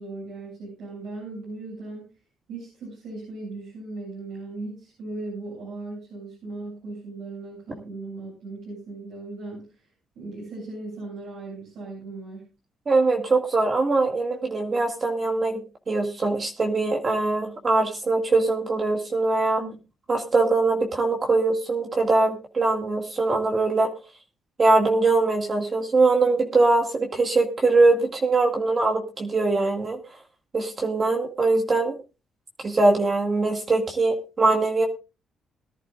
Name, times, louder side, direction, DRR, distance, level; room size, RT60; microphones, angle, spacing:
voice 1, 0.0-2.1 2.5-9.9 10.2-12.5 19.6-19.8, right 2 dB, 80° right, -4 dB, 7.7 m, -37 dB
voice 2, 12.9-15.6 15.9-19.6 20.1-23.9 24.6-30.0 30.5-32.0 32.6-34.9, right 3 dB, 35° right, 2 dB, 2.1 m, -22 dB
21.5 x 11.0 x 2.5 m, 0.31 s
cardioid pair, 90°, 0 cm